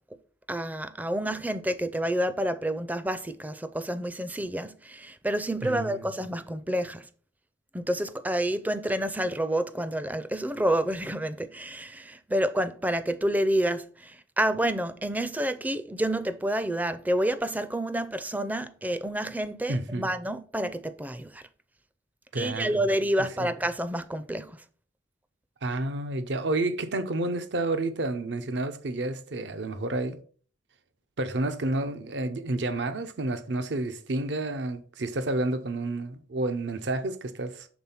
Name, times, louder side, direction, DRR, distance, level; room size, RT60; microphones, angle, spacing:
voice 1, 0.5-7.1 7.7-21.4 22.3-24.6, right 1 dB, 10° right, 0.4 m, -29 dB
voice 2, 5.6-6.0 19.7-20.1 22.3-22.8 23.4-23.5 25.6-30.2 31.2-37.7, right 2 dB, 65° right, 0.6 m, -30 dB
6.1 x 3.6 x 5.5 m
head